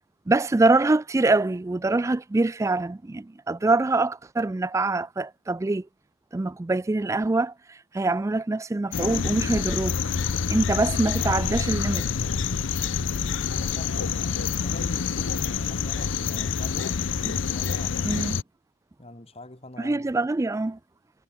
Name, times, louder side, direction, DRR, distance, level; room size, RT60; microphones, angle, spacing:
voice 1, 0.3-5.9 6.3-10.0 10.5-12.1 17.3-17.4 18.0-18.4 19.8-20.8, right 2 dB, 15° right, 0.3 m, -24 dB
sound 1, 8.9-18.4, left 6 dB, 85° left, 0.6 m, -27 dB
voice 2, 13.5-17.0 17.4-18.2 19.0-20.1, left 1 dB, 30° left, 2.7 m, -44 dB
head